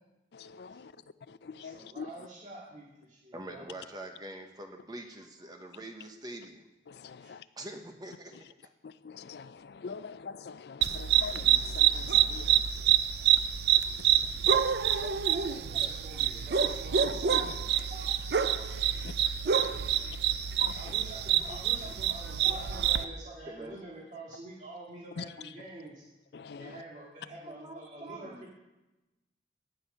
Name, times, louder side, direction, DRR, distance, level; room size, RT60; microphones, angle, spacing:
voice 1, 0.3-0.9 1.3-2.1 6.9-7.4 8.8-12.6 19.0-19.1 20.6-20.7 25.2-25.3 26.3-26.7, left 5 dB, 60° left, 15 dB, 0.4 m, -43 dB
voice 2, 1.6-3.7 7.2-7.4 15.6-17.6 20.8-26.0 26.6-28.3, right 1 dB, 40° right, -5 dB, 2.0 m, -47 dB
voice 3, 3.3-6.7 7.6-8.5 12.8-12.9 14.5-14.6 15.0-16.0 16.7-16.8 17.3-17.6 17.9-18.2 18.6-18.7 19.4-19.6 19.9-20.1 20.6-20.8 21.5-21.9 22.4-22.9 23.5-23.8 27.5-28.5, right 1 dB, 20° right, 4 dB, 0.9 m, -45 dB
sound 1, 10.8-23.0, right 9 dB, 60° right, 0.5 m, -27 dB
17.5 x 6.4 x 5.5 m, 1.0 s
head